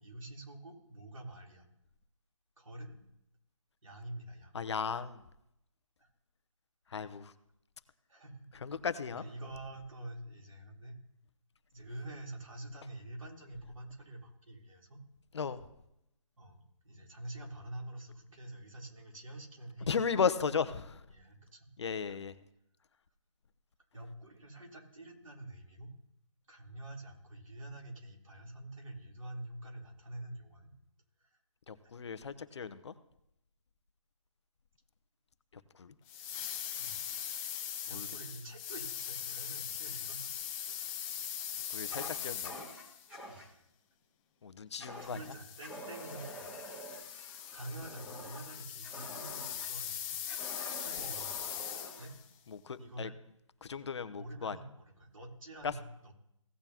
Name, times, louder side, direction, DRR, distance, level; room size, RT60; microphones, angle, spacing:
voice 1, 0.0-1.7 2.6-3.0 3.8-4.6 4.9-5.0 6.0-6.1 8.1-8.5 9.2-11.0 11.7-15.0 16.4-20.0 21.1-21.7 23.9-25.9 26.5-30.7 31.2-31.4 36.8-37.0 37.9-40.5 43.3-43.4 45.0-46.5 46.9-47.0 47.5-50.2 50.8-51.3 52.0-52.1 52.8-53.2 54.2-56.1, right 1 dB, 80° right, -1 dB, 3.5 m, -47 dB
voice 2, 4.5-5.2 6.9-7.3 8.6-9.3 15.3-15.6 19.9-21.0 21.8-22.3 31.7-32.9 35.7-35.9 37.9-38.1 41.7-42.6 44.4-45.2 52.5-53.1 53.6-54.6 55.6-55.7, left 6 dB, 55° left, 12 dB, 0.8 m, -35 dB
sound 1, 36.1-43.1 45.0-52.2, left 9 dB, 15° left, 0.8 m, -41 dB
Fire, 41.9-43.5 44.8-45.2 45.6-49.7 50.3-52.1, equal, 5° right, 1.6 m, -47 dB
16.5 x 8.8 x 2.9 m, 0.80 s
figure-of-eight pair, 155°, 17 cm